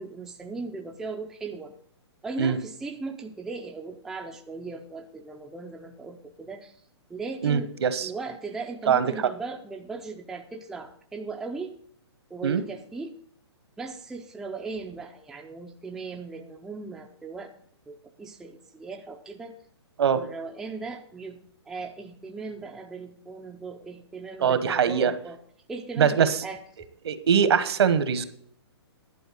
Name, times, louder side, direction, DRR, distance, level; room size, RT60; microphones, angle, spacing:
voice 1, 0.0-1.7 2.2-6.7 7.1-7.7 8.0-11.8 12.3-13.1 13.8-17.5 17.9-19.5 20.1-21.4 21.7-25.4 25.7-26.6, right 4 dB, 5° right, 3 dB, 0.4 m, -38 dB
voice 2, 7.4-8.1 8.9-9.3 12.4-12.6 20.0-20.2 24.4-25.1 26.0-26.4 27.0-28.2, right 7 dB, 70° right, 13 dB, 1.1 m, -22 dB
11.0 x 4.5 x 7.9 m, 0.63 s
hypercardioid pair, 155°, 14 cm